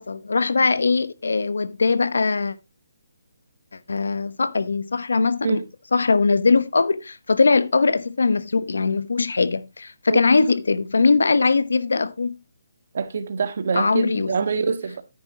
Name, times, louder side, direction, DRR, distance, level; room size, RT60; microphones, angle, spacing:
voice 1, 0.1-2.5 3.9-5.6 5.9-12.4 13.7-14.4, left 4 dB, 90° left, 1.1 m, -21 dB
voice 2, 12.9-15.0, right 5 dB, 55° right, 1.8 m, -25 dB
9.9 x 9.7 x 2.9 m
hypercardioid pair, 165°, 0 cm